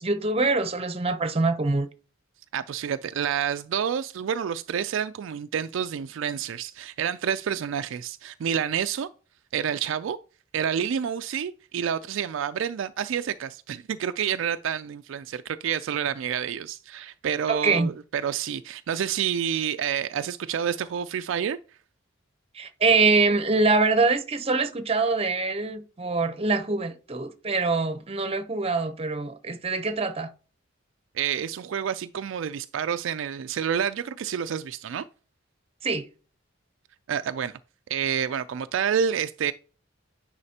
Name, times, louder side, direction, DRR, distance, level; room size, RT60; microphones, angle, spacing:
voice 1, 0.0-1.9 17.5-17.9 22.5-30.3 35.8-36.1, right 3 dB, 30° right, 0.7 m, -24 dB
voice 2, 2.5-9.1 9.5-10.2 10.5-21.6 31.1-35.0 37.1-37.5 37.9-39.5, right 8 dB, 65° right, 0.3 m, -28 dB
9.7 x 4.9 x 2.8 m
head